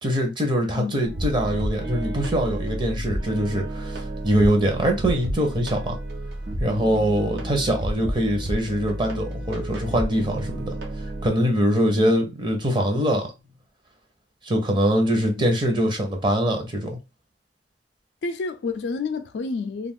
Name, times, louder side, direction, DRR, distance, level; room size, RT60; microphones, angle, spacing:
voice 1, 0.0-6.0 6.6-10.8 11.2-13.3 14.5-16.9, equal, 25° right, 0.7 m, -23 dB
voice 2, 0.7-1.1 12.0-12.2 15.3-15.5 18.2-19.9, left 4 dB, 85° left, 0.4 m, -30 dB
sound 1, 1.0-11.3, right 1 dB, 65° right, 0.7 m, -31 dB
2.4 x 2.4 x 3.5 m
head